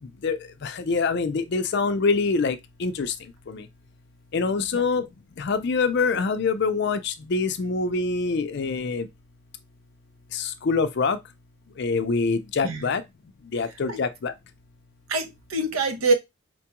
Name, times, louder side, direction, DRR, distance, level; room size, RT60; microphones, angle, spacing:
voice 1, 0.0-3.7 4.3-5.1 5.4-9.1 10.3-11.2 11.8-13.0 13.4-14.3, left 4 dB, 50° left, 0.4 m, -25 dB
voice 2, 15.1-16.1, right 3 dB, 80° right, 0.8 m, -25 dB
4.3 x 2.2 x 2.9 m
head